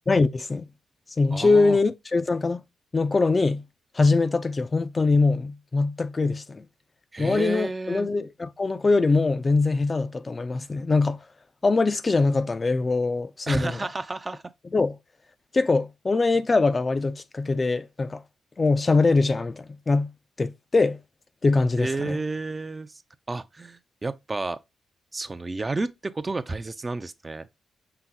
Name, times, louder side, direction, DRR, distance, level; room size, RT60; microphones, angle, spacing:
voice 1, 0.1-0.7 1.2-2.6 2.9-3.6 3.9-6.6 7.2-11.2 11.6-13.8 14.7-15.0 15.5-18.2 18.6-20.1 20.4-21.0 21.4-22.2, left 3 dB, 35° left, 0.4 m, -22 dB
voice 2, 1.3-1.8 7.1-8.1 13.5-14.4 21.8-23.0 23.3-24.6 25.1-27.5, right 3 dB, 30° right, 0.4 m, -31 dB
5.7 x 2.0 x 3.8 m
supercardioid pair, 55°, 0 cm